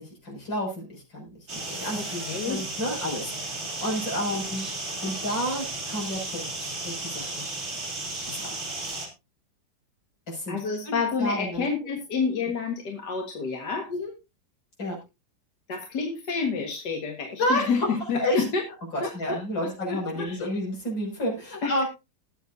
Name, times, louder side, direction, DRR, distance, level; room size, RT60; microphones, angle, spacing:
voice 1, 0.0-4.7 5.0-7.5 8.3-8.6 10.3-10.6 10.8-11.7 13.9-14.1 14.8-15.0 17.4-17.9 18.2-18.5 18.9-21.9, left 1 dB, 80° left, -1 dB, 7.0 m, -30 dB
sound 1, 1.5-9.1, right 2 dB, 35° right, 3.2 m, -34 dB
voice 2, 2.2-2.6 10.5-13.9 15.7-18.6 19.0-20.6 21.6-21.8, left 5 dB, 65° left, 2 dB, 2.1 m, -29 dB
20.0 x 7.8 x 2.6 m, 0.27 s
omnidirectional pair, 2.0 m